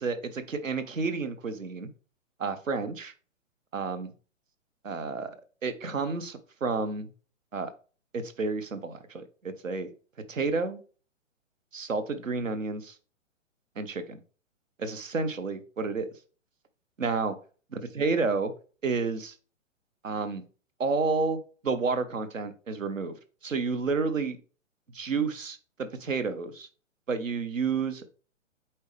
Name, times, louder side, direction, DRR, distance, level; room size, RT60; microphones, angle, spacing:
voice 1, 0.0-1.9 2.4-3.1 3.7-4.1 4.8-5.4 5.6-7.1 7.5-7.7 8.1-9.9 10.3-10.8 11.7-12.9 13.8-14.2 14.8-16.1 17.0-17.4 17.7-18.5 18.8-19.3 20.0-20.4 20.8-23.2 23.4-24.4 24.9-26.7 27.1-28.1, right 4 dB, 80° right, 11 dB, 1.2 m, -30 dB
7.9 x 4.4 x 3.3 m, 0.38 s
figure-of-eight pair, 125°, 39 cm